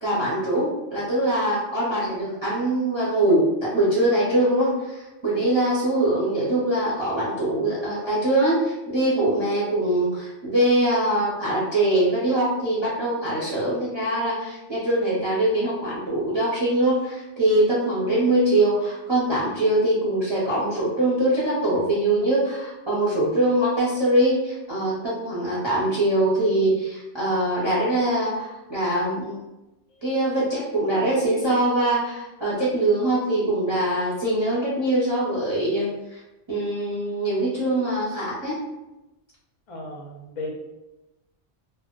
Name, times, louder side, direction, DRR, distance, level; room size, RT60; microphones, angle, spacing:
voice 1, 0.0-29.4 30.0-36.2 36.5-38.6, right 1 dB, 30° right, -7 dB, 0.6 m, -23 dB
voice 2, 39.7-40.5, left 2 dB, 50° left, 0 dB, 0.4 m, -35 dB
2.1 x 2.1 x 3.7 m, 0.99 s
omnidirectional pair, 1.2 m